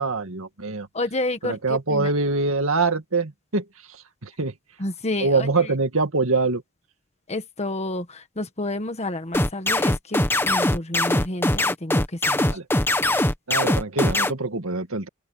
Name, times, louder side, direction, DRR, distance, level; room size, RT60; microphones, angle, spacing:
voice 1, 0.0-0.9 1.4-3.6 4.2-4.5 5.2-6.6 12.5-12.6 13.5-15.1, right 3 dB, 65° right, 2.2 m, -24 dB
voice 2, 0.9-2.1 4.8-5.7 7.3-12.6, left 2 dB, 30° left, 1.5 m, -30 dB
sound 1, 9.3-14.3, left 1 dB, 10° left, 1.6 m, -21 dB
open air
head